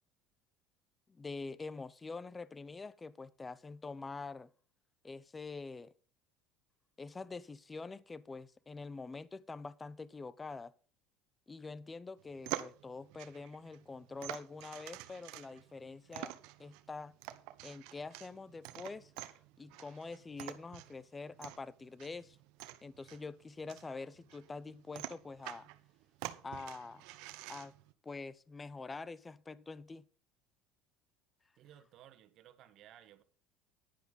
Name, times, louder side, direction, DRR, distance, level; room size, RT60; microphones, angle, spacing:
voice 1, 1.1-4.5 5.0-5.9 7.0-10.7 11.5-16.3 16.6-17.2 17.6-19.1 19.6-22.4 22.8-25.7 26.4-27.0 27.5-27.7 28.0-30.0, left 4 dB, 20° left, 0.7 m, -45 dB
sound 1, 12.2-27.9, right 16 dB, 70° right, 0.9 m, -48 dB
voice 2, 31.6-33.2, right 11 dB, 55° right, 1.5 m, -58 dB
10.5 x 10.5 x 4.1 m
supercardioid pair, 90°, 0 cm